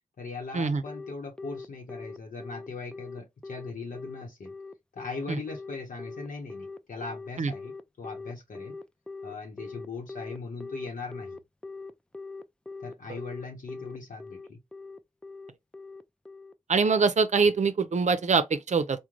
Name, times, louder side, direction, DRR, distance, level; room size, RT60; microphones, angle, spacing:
voice 1, 0.2-4.5 4.9-7.7 8.0-8.8 9.2-11.4 12.8-14.6, left 4 dB, 85° left, 0.8 m, -39 dB
Telephone, 0.9-17.0, left 3 dB, 5° left, 0.4 m, -41 dB
voice 2, 16.7-19.0, right 4 dB, 60° right, 0.5 m, -24 dB
3.7 x 2.1 x 3.0 m
wide cardioid pair, 60°, 13 cm